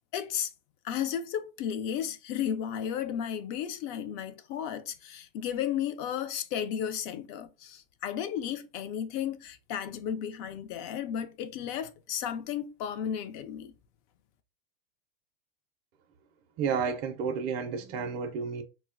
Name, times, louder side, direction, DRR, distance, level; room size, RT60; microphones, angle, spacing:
voice 1, 0.1-0.5 0.8-13.7, left 9 dB, 40° left, 0.4 m, -34 dB
voice 2, 16.6-18.6, right 6 dB, 40° right, 0.4 m, -31 dB
3.8 x 2.1 x 2.4 m
supercardioid pair, 145°, 30 cm